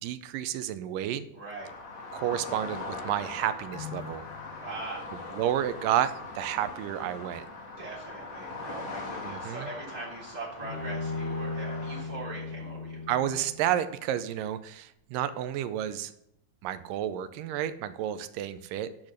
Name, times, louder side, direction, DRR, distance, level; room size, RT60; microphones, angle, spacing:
voice 1, 0.0-1.3 2.1-4.3 5.3-7.5 9.2-9.7 13.1-16.1 16.6-18.9, right 11 dB, 80° right, 11 dB, 2.2 m, -31 dB
voice 2, 1.3-1.7 4.6-5.1 7.8-13.0, right 3 dB, 25° right, -5 dB, 3.7 m, -41 dB
sound 1, 1.6-12.0, left 3 dB, 55° left, 2.5 m, -41 dB
sound 2, 3.7-6.6 7.0-7.1, left 10 dB, 90° left, 1.1 m, -46 dB
Bowed string instrument, 10.6-13.9, left 3 dB, 30° left, 4.2 m, -36 dB
10.5 x 6.2 x 6.3 m, 0.76 s
omnidirectional pair, 4.0 m